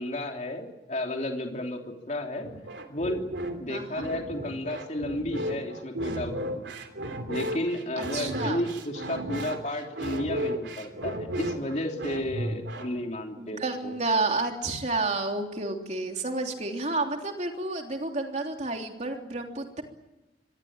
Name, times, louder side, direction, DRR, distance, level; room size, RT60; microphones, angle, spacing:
voice 1, 0.0-2.5 2.9-3.2 3.6-6.8 7.3-13.9, left 1 dB, 40° left, 2 dB, 3.1 m, -32 dB
sound 1, 2.4-13.0, right 1 dB, 90° right, 3.2 m, -34 dB
voice 2, 3.7-4.1 8.0-8.6 13.4-19.8, right 3 dB, 40° right, 3 dB, 3.3 m, -30 dB
26.0 x 21.0 x 8.9 m, 1.0 s
head